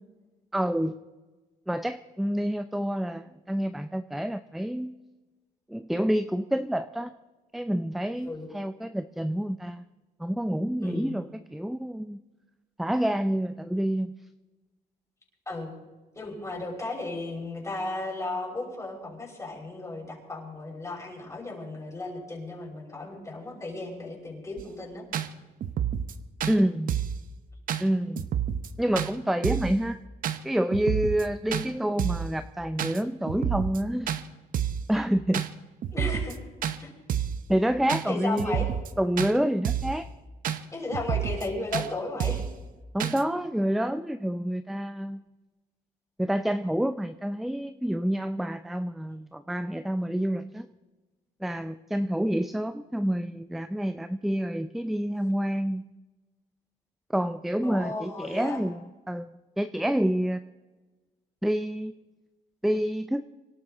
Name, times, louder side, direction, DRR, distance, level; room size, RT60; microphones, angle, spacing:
voice 1, 0.5-1.0 1.7-5.0 5.7-7.1 7.5-9.8 10.2-12.2 12.8-14.1 26.5-27.0 27.8-28.3 28.8-30.0 30.4-34.1 34.9-35.4 37.5-38.7 39.0-40.1 42.9-45.2 46.2-50.7 51.4-55.9 57.1-60.4 61.4-62.0 62.6-63.2, equal, ahead, 11 dB, 0.5 m, -28 dB
voice 2, 10.8-11.2 15.5-15.7 16.1-25.0 35.9-36.4 36.8-36.9 38.0-38.7 40.7-42.5 57.6-58.6, left 2 dB, 20° left, -2 dB, 5.7 m, -35 dB
sound 1, 24.6-24.7 25.1-25.3 25.6-26.1 26.4-26.6 26.9-27.2 27.7-27.8 28.2-28.7 29.0-29.1 29.4-29.7 30.2-30.4 30.7-31.2 31.5-31.7 32.0-32.3 32.8-33.0 33.3-33.8 34.1-34.2 34.5-34.9 35.3-35.5 35.8-36.4 36.6-36.8 37.1-37.4 37.9-38.0 38.4-38.9 39.2-39.3 39.7-40.0 40.4-40.6 40.9-41.5 41.7-41.9 42.2-42.5 43.0-43.2, right 9 dB, 55° right, 1.0 m, -29 dB
25.0 x 12.0 x 3.9 m, 1.2 s
cardioid pair, 110°, 17 cm